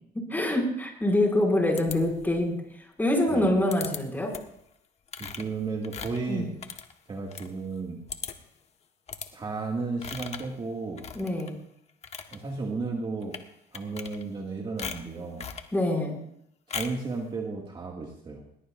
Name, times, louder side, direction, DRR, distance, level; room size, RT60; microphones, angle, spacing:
voice 1, 0.1-2.6 3.0-4.3 6.3-6.5 11.1-11.5 15.7-16.2, left 1 dB, 10° left, 0 dB, 5.9 m, -25 dB
sound 1, 1.8-2.5 3.7-4.0 4.3-4.6 5.1-7.5 7.8-7.9 8.1-8.5 9.1-9.3 10.0-10.5 11.0-11.5 11.9-12.4 13.2-13.5 13.7-14.5 14.8-15.7 16.7-17.1, left 6 dB, 40° left, 1.3 m, -39 dB
voice 2, 5.2-6.5 7.1-8.0 9.3-11.1 12.3-13.4 13.7-15.5 16.7-18.4, right 4 dB, 30° right, 0 dB, 2.1 m, -33 dB
20.5 x 20.0 x 2.6 m, 0.71 s
cardioid pair, 110°, 17 cm